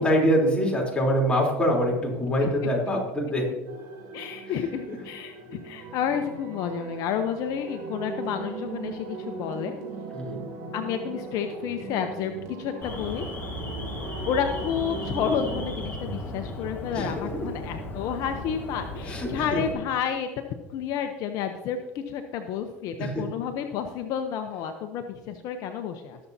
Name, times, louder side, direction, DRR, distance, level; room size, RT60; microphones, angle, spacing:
voice 1, 0.0-3.5 4.9-5.0 10.1-10.4 16.9-17.3 19.0-19.6 23.0-23.1, equal, 15° left, -2 dB, 3.5 m, -24 dB
sound 1, 3.7-15.7, right 4 dB, 65° right, 3.0 m, -38 dB
voice 2, 4.1-9.7 10.7-13.3 14.3-20.3 20.7-26.2, left 8 dB, 60° left, 7 dB, 0.8 m, -30 dB
Alarm, 12.8-19.7, left 1 dB, 30° left, 2.1 m, -36 dB
19.5 x 7.1 x 2.8 m, 1.2 s
supercardioid pair, 100°, 7 cm